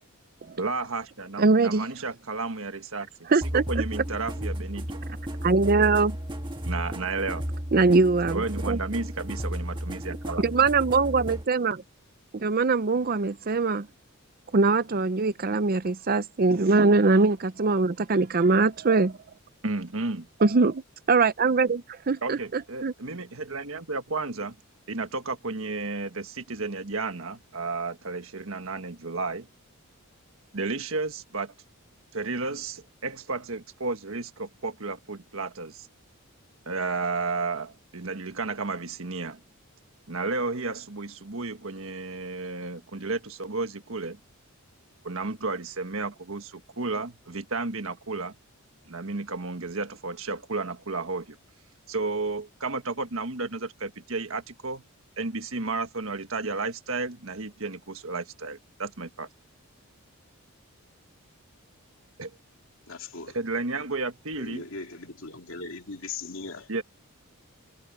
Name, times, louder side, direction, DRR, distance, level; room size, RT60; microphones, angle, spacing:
voice 1, 0.5-3.1 3.5-5.0 6.6-7.4 8.3-10.6 19.6-20.3 22.2-24.5 24.9-29.5 30.5-31.5 32.1-35.9 36.7-39.4 40.1-44.2 45.0-48.3 48.9-51.4 51.9-54.8 55.2-59.3 62.2-62.4 63.3-64.6 66.7-66.8, right 3 dB, 65° right, 1.5 m, -32 dB
voice 2, 1.4-1.9 3.3-3.8 5.4-6.2 7.7-8.8 10.4-11.8 12.3-13.9 14.5-19.2 20.4-20.8 21.1-22.9, right 3 dB, 45° right, 0.6 m, -22 dB
sound 1, 3.4-11.5, equal, 20° right, 1.5 m, -33 dB
voice 3, 62.9-63.4 64.4-66.7, left 4 dB, 60° left, 3.1 m, -39 dB
head